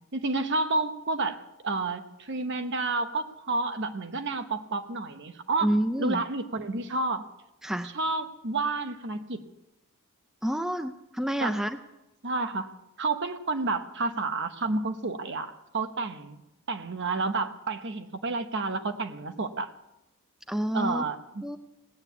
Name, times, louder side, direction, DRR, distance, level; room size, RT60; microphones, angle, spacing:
voice 1, 0.1-5.7 6.0-7.3 7.9-9.4 11.4-11.6 12.2-12.7 13.0-16.4 16.7-19.7 20.7-21.4, right 3 dB, 55° right, 8 dB, 1.0 m, -30 dB
voice 2, 5.6-6.3 7.6-7.9 10.4-11.8 20.5-21.0 21.4-21.6, equal, ahead, 8 dB, 0.5 m, -28 dB
18.0 x 8.9 x 8.4 m, 0.93 s
head